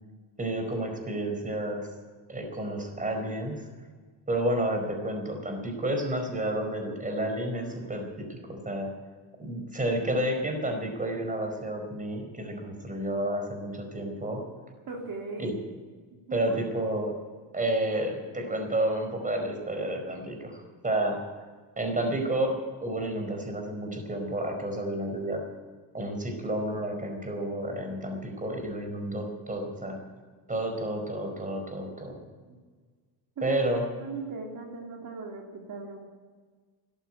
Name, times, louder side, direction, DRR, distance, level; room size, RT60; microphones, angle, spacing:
voice 1, 0.4-1.9 2.3-3.7 4.3-8.9 9.4-14.4 15.4-15.5 16.3-17.1 17.5-20.6 20.8-21.2 21.8-25.4 25.9-30.0 30.5-32.2 33.4-33.8, right 1 dB, 20° right, 4 dB, 4.8 m, -30 dB
voice 2, 14.9-15.5 16.1-16.5 32.5-32.6 33.4-33.6 34.0-36.1, right 4 dB, 50° right, 0 dB, 3.1 m, -38 dB
13.5 x 11.5 x 9.2 m, 1.5 s
supercardioid pair, 90°, 43 cm